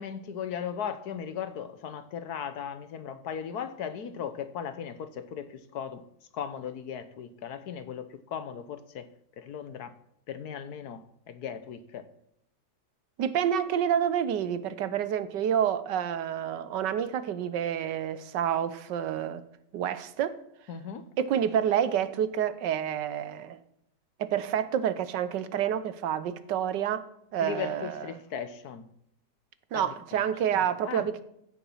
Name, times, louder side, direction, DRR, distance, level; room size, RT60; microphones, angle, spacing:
voice 1, 0.0-6.1 6.3-9.1 9.4-9.9 10.3-12.1 20.7-21.1 27.4-28.9 29.7-29.9 30.5-31.1, left 8 dB, 65° left, 1.3 m, -37 dB
voice 2, 13.2-19.4 19.7-20.4 21.2-23.6 24.2-27.1 27.3-28.1 29.7-31.2, right 9 dB, 80° right, 1.4 m, -28 dB
14.5 x 7.1 x 5.6 m
omnidirectional pair, 1.9 m